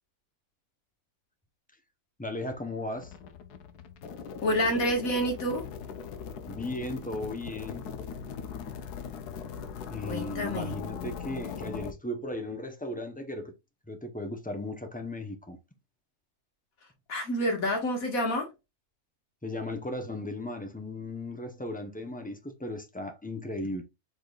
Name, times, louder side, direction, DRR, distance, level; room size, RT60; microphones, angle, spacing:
voice 1, 2.2-3.1 6.5-7.9 9.9-13.5 13.9-15.6 19.4-23.8, left 1 dB, 10° left, 0.4 m, -36 dB
sound 1, 3.0-11.9, left 6 dB, 85° left, 1.3 m, -40 dB
voice 2, 4.4-5.6 10.1-10.7 17.1-18.5, equal, 65° left, 2.0 m, -28 dB
5.0 x 4.1 x 2.3 m
omnidirectional pair, 1.6 m